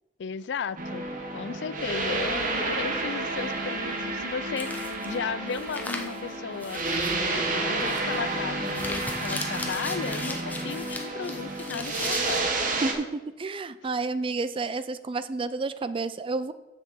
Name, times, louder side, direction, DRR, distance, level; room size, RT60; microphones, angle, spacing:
voice 1, 0.2-1.1 1.3-6.8 7.1-12.6, left 6 dB, 80° left, 17 dB, 0.4 m, -35 dB
sound 1, 0.8-12.9, right 2 dB, 50° right, 1.4 m, -30 dB
sound 2, 4.6-5.1 5.5-6.2 6.6-7.2 7.7-8.2 8.7-12.4, left 2 dB, 10° left, 1.0 m, -38 dB
voice 2, 12.8-16.5, right 3 dB, 30° right, 14 dB, 0.4 m, -30 dB
7.2 x 6.1 x 7.0 m, 1.1 s
head